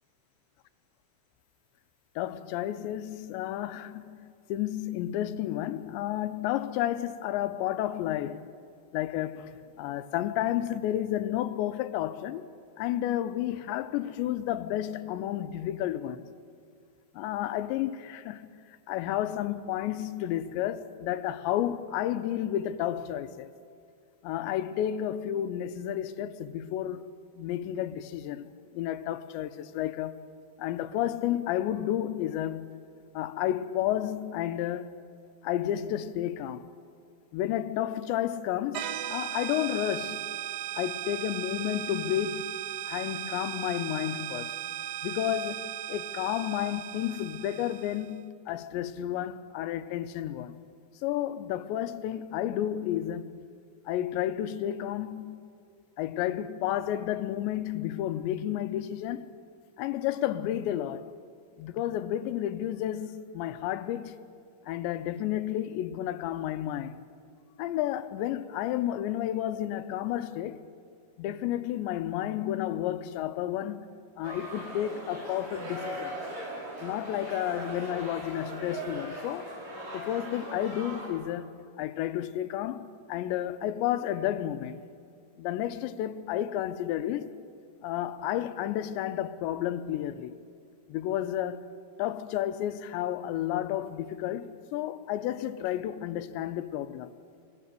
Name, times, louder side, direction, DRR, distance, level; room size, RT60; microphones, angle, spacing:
voice 1, 2.2-8.5 8.9-12.5 12.8-16.2 17.1-18.5 18.9-23.5 24.2-27.1 27.4-28.5 28.7-30.2 30.6-32.8 33.1-35.0 35.4-36.7 37.3-40.2 40.8-42.6 42.9-44.5 45.0-50.6 51.0-53.5 53.9-55.4 56.0-59.3 59.8-61.1 61.6-64.2 64.7-67.0 67.6-70.6 71.2-73.9 74.2-76.1 76.8-79.5 79.9-84.8 85.4-87.3 87.8-90.4 90.9-91.7 92.0-97.1, left 12 dB, 80° left, 2.9 m, -31 dB
sound 1, 38.7-48.1, right 12 dB, 90° right, 1.9 m, -37 dB
sound 2, 74.2-81.1, right 1 dB, 70° right, 8.1 m, -39 dB
26.0 x 24.5 x 6.8 m
omnidirectional pair, 5.3 m